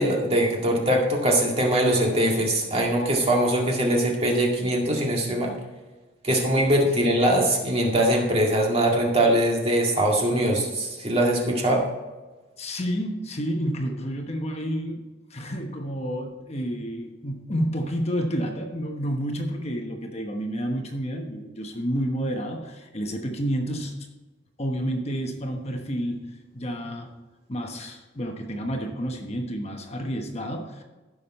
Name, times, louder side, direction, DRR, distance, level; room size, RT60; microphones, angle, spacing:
voice 1, 0.0-5.5 6.2-11.8, right 1 dB, 30° right, -1 dB, 2.1 m, -22 dB
voice 2, 12.6-15.0 15.3-23.9 24.6-27.1 27.5-30.8, equal, 30° left, 2 dB, 1.1 m, -30 dB
15.5 x 6.5 x 4.3 m, 1.2 s
head